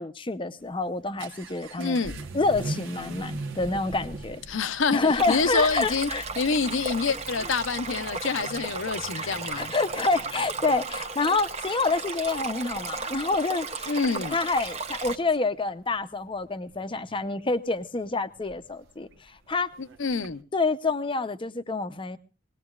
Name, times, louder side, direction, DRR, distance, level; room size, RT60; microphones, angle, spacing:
voice 1, 0.0-2.0 2.3-4.4 4.9-6.2 7.4-7.5 9.1-14.0 14.3-19.7 20.5-22.2, left 3 dB, 25° left, 11 dB, 0.6 m, -28 dB
Vehicle / Accelerating revving vroom, 0.6-20.4, right 2 dB, 70° right, 1.1 m, -43 dB
voice 2, 1.8-2.1 4.5-6.1 6.4-9.7 13.9-14.4 19.8-20.4, left 4 dB, 70° left, 13 dB, 0.7 m, -27 dB
Stream, 5.2-15.1, right 4 dB, 35° right, 0.9 m, -34 dB
21.5 x 18.5 x 2.3 m, 0.32 s
head